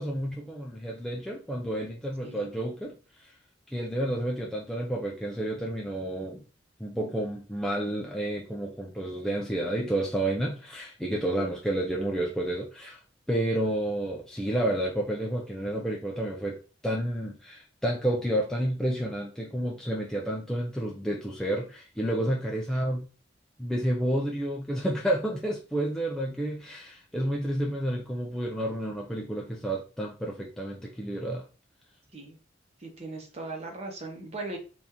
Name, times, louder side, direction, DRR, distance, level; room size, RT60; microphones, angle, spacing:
voice 1, 0.0-3.4 3.7-6.4 6.8-13.0 13.3-23.1 23.6-31.4, right 1 dB, 5° left, 0.4 m, -30 dB
voice 2, 32.8-34.6, right 2 dB, 35° right, 0.9 m, -38 dB
3.5 x 2.6 x 2.8 m
head